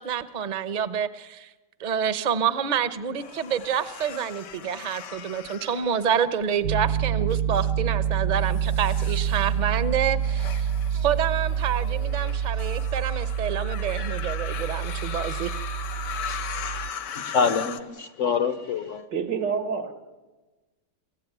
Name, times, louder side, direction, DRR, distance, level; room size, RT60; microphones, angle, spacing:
voice 1, 0.0-1.5 1.8-15.5, right 8 dB, 35° right, 13 dB, 0.8 m, -28 dB
sound 1, 3.2-6.6 7.2-7.7 8.4-17.8, left 7 dB, 80° left, 1.7 m, -38 dB
Piano, 6.6-16.9, right 8 dB, 65° right, 1.3 m, -27 dB
voice 2, 16.0-19.1, left 6 dB, 50° left, 12 dB, 1.2 m, -27 dB
voice 3, 19.1-19.9, right 6 dB, 90° right, 8 dB, 2.8 m, -27 dB
28.0 x 15.5 x 9.3 m, 1.2 s
omnidirectional pair, 1.9 m